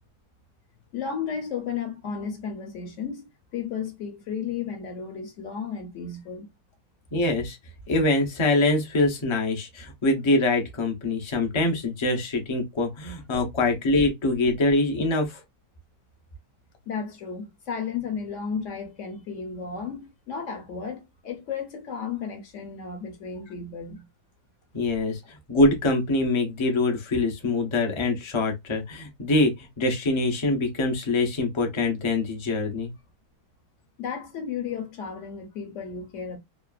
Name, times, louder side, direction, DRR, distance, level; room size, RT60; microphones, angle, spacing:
voice 1, 0.9-6.5 16.9-24.0 34.0-36.4, left 6 dB, 60° left, 0.9 m, -33 dB
voice 2, 7.1-7.6 7.9-15.4 24.7-25.2 25.5-32.9, left 2 dB, 45° left, 0.3 m, -24 dB
2.9 x 2.4 x 2.3 m
omnidirectional pair, 1.6 m